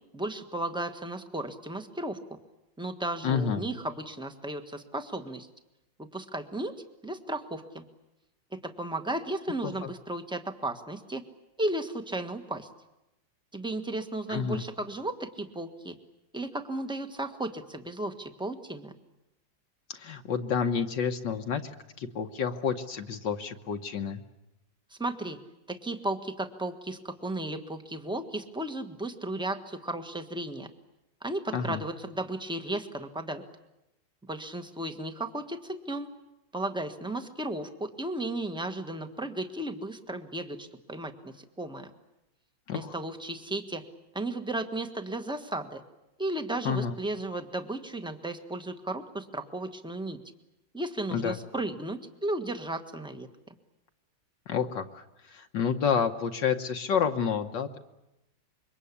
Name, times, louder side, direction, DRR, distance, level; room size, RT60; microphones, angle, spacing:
voice 1, 0.1-2.2 2.8-5.5 6.0-6.8 7.0-7.8 8.5-11.2 11.6-12.7 13.5-15.9 16.3-18.9 25.0-25.4 25.7-30.7 31.2-33.4 34.2-36.1 36.5-41.9 42.7-43.8 44.1-45.8 46.2-50.2 50.7-53.3, right 1 dB, 5° right, 7 dB, 1.2 m, -34 dB
voice 2, 3.2-3.6 9.6-9.9 14.3-14.6 19.9-21.7 22.0-24.2 31.5-31.8 42.7-43.0 46.6-47.0 51.1-51.4 54.5-57.8, left 6 dB, 65° left, 5 dB, 1.7 m, -29 dB
26.5 x 23.5 x 8.5 m, 0.93 s
omnidirectional pair, 2.1 m